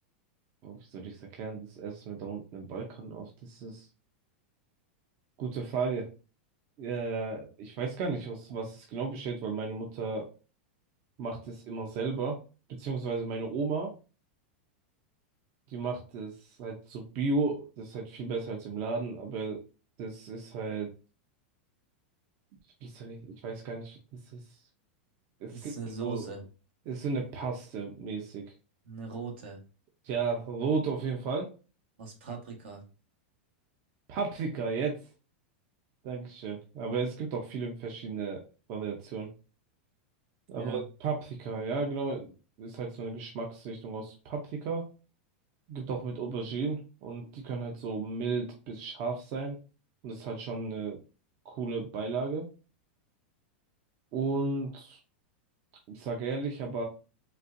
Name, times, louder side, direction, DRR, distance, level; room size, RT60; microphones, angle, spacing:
voice 1, 0.6-3.9 5.4-6.1 6.8-10.3 11.2-12.4 12.7-13.9 15.7-19.6 20.0-20.9 22.8-24.6 25.4-25.8 26.0-26.3 26.9-28.5 30.0-31.5 34.1-35.1 36.0-38.4 38.7-39.3 40.5-44.9 45.7-49.6 50.0-51.0 51.4-52.5 54.1-55.0 55.9-56.8, right 4 dB, 45° right, 1 dB, 0.7 m, -34 dB
voice 2, 25.5-26.5 28.8-29.6 32.0-32.8 40.5-40.8, right 4 dB, 75° right, 1 dB, 1.5 m, -40 dB
4.2 x 2.5 x 2.6 m, 0.33 s
supercardioid pair, 140°, 6 cm